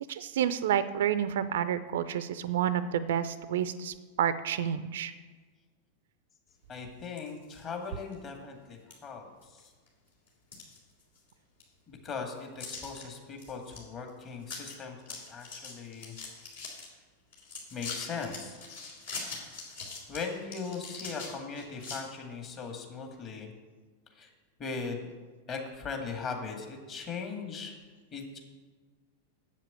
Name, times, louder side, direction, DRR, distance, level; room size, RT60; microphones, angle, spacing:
voice 1, 0.1-5.1, right 9 dB, 60° right, 14 dB, 0.5 m, -29 dB
voice 2, 6.7-9.6 11.9-15.0 15.3-16.2 17.7-18.6 20.1-23.5 24.2-24.3 24.6-25.1 25.5-27.8 28.1-28.4, left 5 dB, 30° left, 3 dB, 2.1 m, -39 dB
sound 1, 7.0-7.6 8.1-8.2 8.9-9.0 9.4-9.9 10.3-11.3 11.6-11.7 12.6-13.0 13.4-13.8 14.1-14.2 14.4-14.7 15.0-16.9 17.3-22.0, left 4 dB, 60° left, 3.3 m, -42 dB
7.9 x 7.4 x 8.2 m, 1.4 s
figure-of-eight pair, 90°, 0 cm